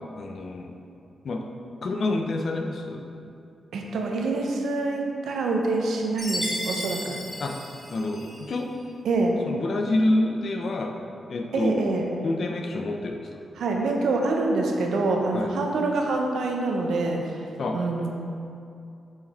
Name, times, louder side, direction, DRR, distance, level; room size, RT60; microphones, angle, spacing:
voice 1, 0.2-0.7 1.2-1.4 1.8-3.0 7.4-7.5 7.9-8.7 9.4-10.9 11.3-11.7 12.2-13.3 15.3-15.5 17.6-17.8, left 2 dB, 50° left, 2 dB, 0.7 m, -27 dB
voice 2, 3.7-7.2 9.0-9.4 11.5-12.1 13.6-17.4 17.7-18.1, right 3 dB, 85° right, 1 dB, 0.8 m, -26 dB
Chime, 6.2-8.5, left 1 dB, 10° left, 1.4 m, -33 dB
7.5 x 4.9 x 4.4 m, 2.6 s
wide cardioid pair, 150°, 0 cm